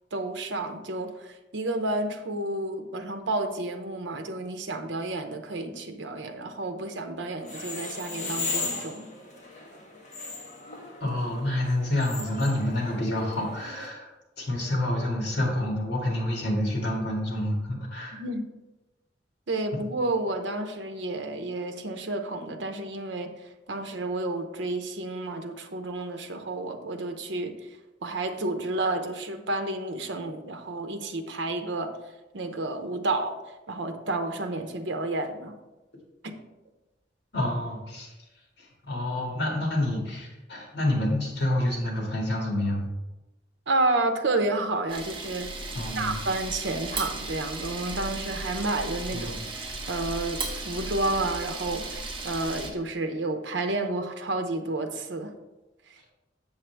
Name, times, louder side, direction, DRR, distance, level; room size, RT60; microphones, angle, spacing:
voice 1, 0.1-9.1 18.1-18.5 19.5-27.8 28.0-32.0 32.3-33.4 33.7-35.6 36.2-36.4 43.7-45.7 46.0-55.3 55.9-56.0, right 2 dB, 75° right, 6 dB, 0.7 m, -30 dB
sound 1, 7.4-13.9, left 3 dB, 45° left, 1.6 m, -37 dB
voice 2, 11.0-14.1 14.4-18.2 37.3-38.1 38.6-42.9 45.7-46.2 49.1-49.4, left 1 dB, 65° left, -1 dB, 2.2 m, -28 dB
Camera, 44.9-52.7, right 3 dB, 30° right, 1.2 m, -35 dB
7.3 x 7.1 x 3.4 m, 1.0 s
head